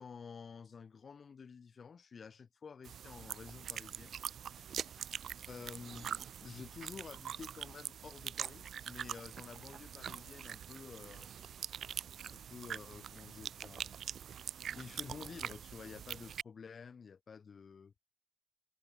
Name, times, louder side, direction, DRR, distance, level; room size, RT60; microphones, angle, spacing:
voice 1, 0.0-4.2 4.5-5.1 5.4-11.3 12.2-14.0 14.7-17.9, left 6 dB, 50° left, 3.1 m, -51 dB
sound 1, 2.8-16.4, right 8 dB, 85° right, 0.9 m, -44 dB
wide cardioid pair, 130°, 0 cm